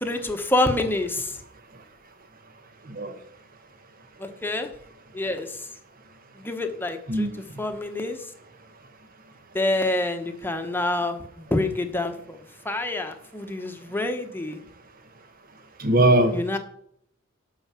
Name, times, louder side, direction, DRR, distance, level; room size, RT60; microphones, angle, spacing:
voice 1, 0.0-1.4 4.2-4.7 5.1-5.6 6.4-7.3 7.6-8.2 9.5-12.4 12.6-14.6 16.3-16.6, left 2 dB, 10° left, 6 dB, 1.1 m, -27 dB
voice 2, 15.8-16.6, right 1 dB, 45° right, 8 dB, 1.4 m, -20 dB
11.5 x 4.8 x 7.5 m, 0.68 s
head